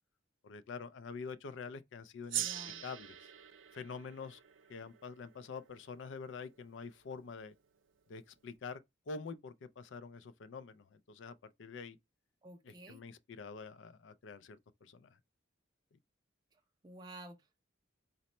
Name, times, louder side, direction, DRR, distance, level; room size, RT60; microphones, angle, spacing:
voice 1, 0.4-2.4 2.8-3.3 3.7-4.4 4.7-7.5 8.1-8.8 9.1-12.0 12.7-15.1, left 5 dB, 65° left, 0.4 m, -46 dB
voice 2, 2.3-2.8 12.4-13.0 16.5-17.6, right 1 dB, 20° right, 0.4 m, -52 dB
Gong, 2.3-7.0, right 11 dB, 80° right, 0.5 m, -43 dB
4.0 x 2.1 x 4.1 m
head